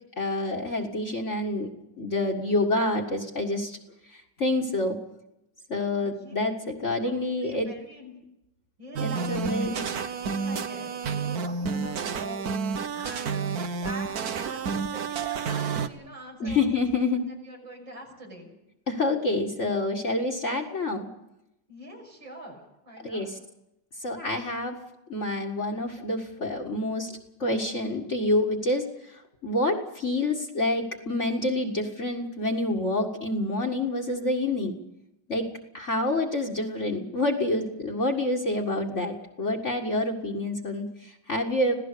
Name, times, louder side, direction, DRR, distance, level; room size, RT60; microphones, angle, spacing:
voice 1, 0.2-1.7 2.0-3.8 4.1-5.0 5.7-7.7 9.0-9.8 16.4-17.2 18.9-21.1 23.0-23.3 24.0-24.8 25.1-34.7 35.3-35.5 35.7-41.7, left 2 dB, 40° left, 3 dB, 2.1 m, -27 dB
voice 2, 6.0-6.5 7.0-7.1 7.4-8.1 8.8-16.7 17.2-18.5 21.7-23.3, right 1 dB, 80° right, 1 dB, 6.9 m, -44 dB
sound 1, 9.0-15.9, right 5 dB, 55° right, 1.5 m, -30 dB
26.0 x 17.5 x 6.8 m, 0.87 s
omnidirectional pair, 2.0 m